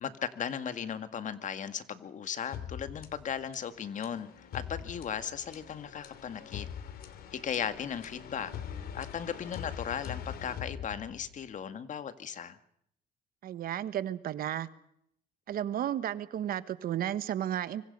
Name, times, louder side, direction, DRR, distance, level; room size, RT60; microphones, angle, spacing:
voice 1, 0.0-6.7 7.3-12.6, left 8 dB, 45° left, 11 dB, 1.9 m, -37 dB
sound 1, 2.5-11.5, left 8 dB, 65° left, 2.9 m, -43 dB
voice 2, 13.4-14.7 15.5-17.8, right 11 dB, 60° right, 14 dB, 1.3 m, -33 dB
26.0 x 24.5 x 5.5 m, 0.72 s
cardioid pair, 110°, 17 cm